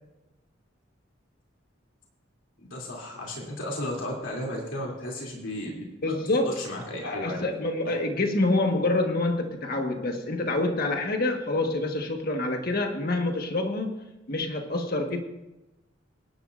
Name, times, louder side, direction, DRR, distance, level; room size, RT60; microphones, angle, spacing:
voice 1, 2.6-5.8 6.4-7.5 7.8-7.9, left 1 dB, 90° left, -2 dB, 2.8 m, -34 dB
voice 2, 6.0-6.6 7.0-13.9 14.3-15.2, left 2 dB, 55° left, 3 dB, 1.4 m, -27 dB
24.5 x 10.5 x 2.5 m, 0.99 s
head